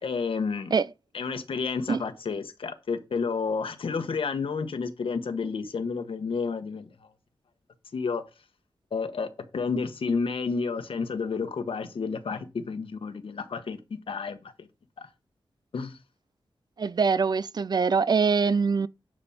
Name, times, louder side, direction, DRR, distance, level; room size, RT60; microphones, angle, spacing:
voice 1, 0.0-0.7 1.1-7.1 7.9-8.2 8.9-13.8 14.1-14.7 15.0-15.1 15.7-16.0, left 5 dB, 70° left, 1.4 m, -31 dB
voice 2, 16.8-18.9, right 5 dB, 45° right, 0.4 m, -23 dB
11.0 x 5.3 x 4.3 m
wide cardioid pair, 90°, 9 cm